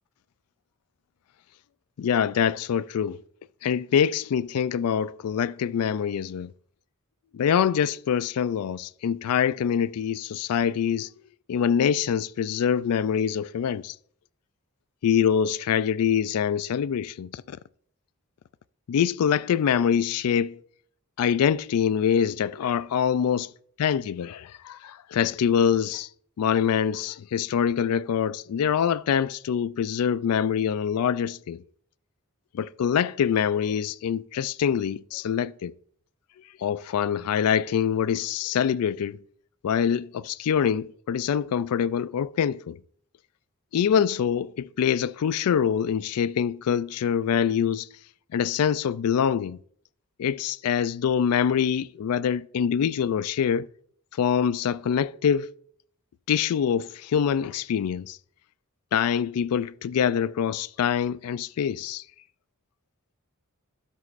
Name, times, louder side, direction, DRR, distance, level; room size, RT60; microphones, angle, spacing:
voice 1, 2.0-3.2 3.6-6.5 7.3-11.1 11.5-14.0 15.0-17.6 18.9-20.6 21.2-23.4 23.8-26.1 26.4-31.6 32.5-35.7 36.6-39.2 39.6-42.8 43.7-47.9 48.3-49.6 50.2-53.7 54.1-55.5 56.3-58.2 58.9-62.0, left 8 dB, 75° left, 0.3 m, -25 dB
12.5 x 11.0 x 2.5 m
head